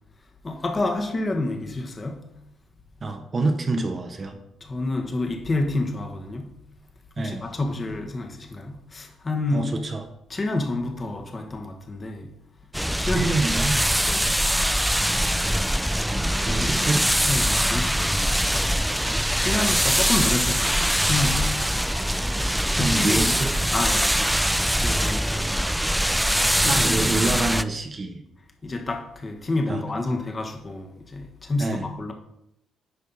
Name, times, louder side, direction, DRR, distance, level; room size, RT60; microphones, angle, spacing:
voice 1, 0.4-2.3 4.6-6.6 7.2-9.7 10.3-12.3 12.9-13.3 14.0-14.4 16.3-18.7 19.3-21.6 22.1-22.3 22.7-26.0 26.6-27.0 28.6-32.1, left 2 dB, 30° left, 1.5 m, -29 dB
voice 2, 3.0-4.4 7.2-7.5 9.5-10.1 13.0-13.8 15.9-17.0 19.4-19.6 22.7-23.5 26.7-28.2 29.7-29.8 31.6-31.9, right 2 dB, 35° right, 1.1 m, -27 dB
sound 1, 12.7-27.6, equal, 5° right, 0.3 m, -23 dB
9.6 x 5.5 x 4.1 m
cardioid pair, 90°, 0 cm